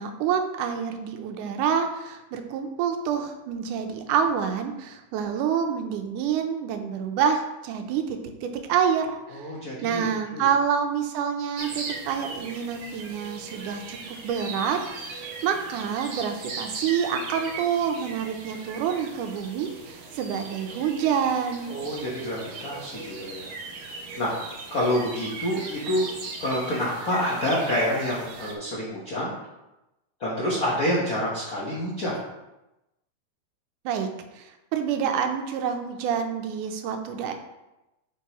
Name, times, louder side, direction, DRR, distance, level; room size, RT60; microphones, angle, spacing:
voice 1, 0.0-9.5 9.8-21.8 33.9-34.1 34.4-37.3, right 7 dB, 90° right, 6 dB, 2.2 m, -27 dB
voice 2, 9.3-10.5 21.7-23.5 24.2-24.3 24.7-26.1 26.4-29.3 30.2-32.2, left 1 dB, 75° left, -5 dB, 0.8 m, -27 dB
sound 1, 11.6-28.5, right 3 dB, 70° right, 1.2 m, -38 dB
8.2 x 5.1 x 3.0 m, 0.96 s
omnidirectional pair, 3.6 m